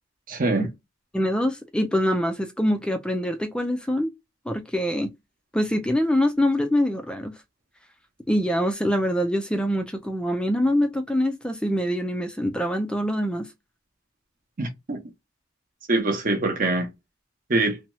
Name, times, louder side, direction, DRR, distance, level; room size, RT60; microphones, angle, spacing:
voice 1, 0.3-0.7 14.6-15.0 15.9-16.9 17.5-17.8, right 2 dB, 40° right, 0.7 m, -24 dB
voice 2, 1.1-4.1 4.5-5.1 5.5-7.3 8.3-13.5, equal, 5° left, 0.4 m, -24 dB
2.7 x 2.3 x 2.9 m
head